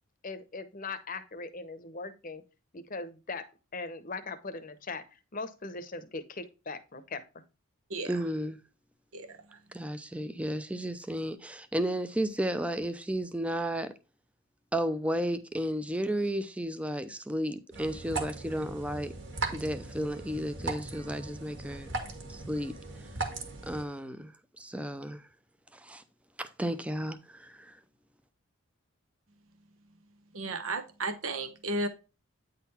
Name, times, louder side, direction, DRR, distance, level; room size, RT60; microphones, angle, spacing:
voice 1, 0.2-2.4 2.7-7.2, left 3 dB, 40° left, 0.8 m, -40 dB
voice 2, 8.0-8.6 9.7-13.9 14.7-19.1 19.5-21.9 22.3-22.7 23.6-24.3 24.6-25.2 25.7-26.0 26.4-27.8, equal, 5° right, 0.5 m, -33 dB
voice 3, 9.1-9.6 30.3-31.9, right 2 dB, 70° right, 1.0 m, -34 dB
sound 1, 17.7-23.8, right 3 dB, 55° right, 1.7 m, -38 dB
9.2 x 3.9 x 4.2 m
head